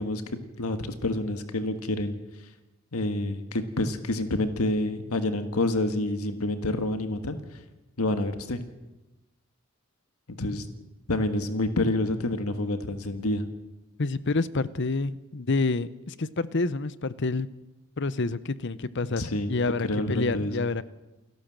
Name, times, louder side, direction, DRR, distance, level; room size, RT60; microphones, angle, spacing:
voice 1, 0.0-2.2 2.9-7.4 8.0-8.6 10.4-10.7 11.1-13.5 19.2-19.5 19.8-20.7, left 1 dB, 85° left, 8 dB, 1.6 m, -28 dB
voice 2, 14.0-17.5 18.0-20.8, left 3 dB, 55° left, 16 dB, 0.8 m, -28 dB
28.5 x 12.0 x 7.6 m, 1.0 s
head